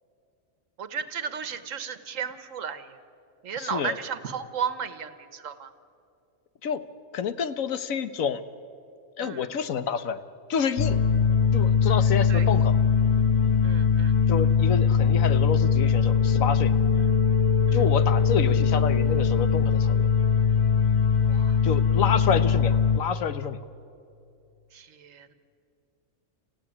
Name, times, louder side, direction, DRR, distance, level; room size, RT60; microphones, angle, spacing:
voice 1, 0.8-3.0 3.4-5.7 9.2-9.5 12.3-12.5 13.6-14.2 17.0-17.1 17.7-17.8 21.2-21.7 24.7-25.3, right 7 dB, 75° right, 12 dB, 1.5 m, -34 dB
voice 2, 3.6-3.9 6.6-6.8 7.1-8.4 9.2-10.2 10.5-11.0 11.5-12.8 14.3-16.7 17.7-20.1 21.6-23.6, left 7 dB, 85° left, 12 dB, 1.4 m, -28 dB
sound 1, 10.8-23.0, left 6 dB, 40° left, 0.7 m, -21 dB
29.5 x 15.0 x 9.9 m, 2.6 s
omnidirectional pair, 1.4 m